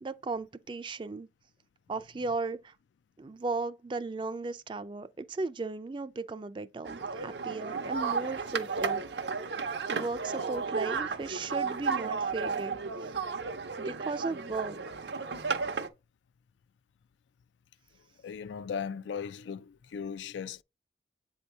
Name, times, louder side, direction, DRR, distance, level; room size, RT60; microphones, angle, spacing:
voice 1, 0.0-1.3 1.9-2.7 3.2-9.0 9.9-12.8 13.1-13.2 13.8-14.8, right 3 dB, 25° right, 0.3 m, -36 dB
sound 1, 6.8-15.9, right 5 dB, 75° right, 0.6 m, -33 dB
voice 2, 18.2-20.6, left 6 dB, 85° left, 0.3 m, -37 dB
8.1 x 2.8 x 4.5 m
head